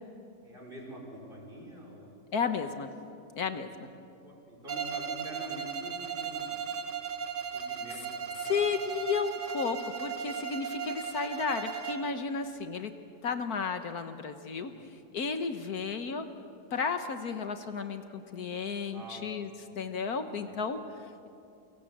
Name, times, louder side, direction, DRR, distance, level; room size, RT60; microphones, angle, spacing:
voice 1, 0.4-2.4 3.5-3.6 4.2-6.7 7.5-8.7 14.7-14.8 18.9-19.2 20.5-20.6, right 1 dB, 30° right, -2 dB, 6.2 m, -46 dB
voice 2, 2.3-2.9 3.3-3.7 8.4-12.9 13.2-14.7 15.1-16.2 16.7-19.5 19.7-20.8, left 5 dB, 70° left, 8 dB, 1.7 m, -33 dB
Bowed string instrument, 4.7-12.1, right 7 dB, 90° right, 2.0 m, -37 dB
29.0 x 24.5 x 7.5 m, 2.6 s
omnidirectional pair, 1.7 m